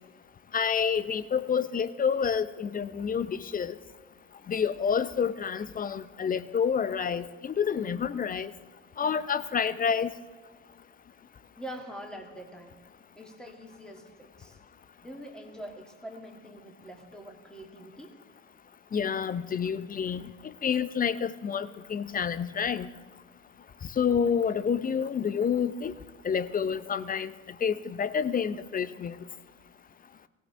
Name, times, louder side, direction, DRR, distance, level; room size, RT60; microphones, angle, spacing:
voice 1, 0.5-3.7 4.5-8.5 9.0-10.1 18.9-20.2 20.6-22.9 24.0-25.9 26.2-27.3 27.6-29.2, left 7 dB, 20° left, 15 dB, 0.7 m, -28 dB
voice 2, 11.6-12.8 13.1-14.6 15.0-18.2, equal, ahead, 3 dB, 2.5 m, -44 dB
18.0 x 17.5 x 3.5 m, 1.4 s
figure-of-eight pair, 60°, 38 cm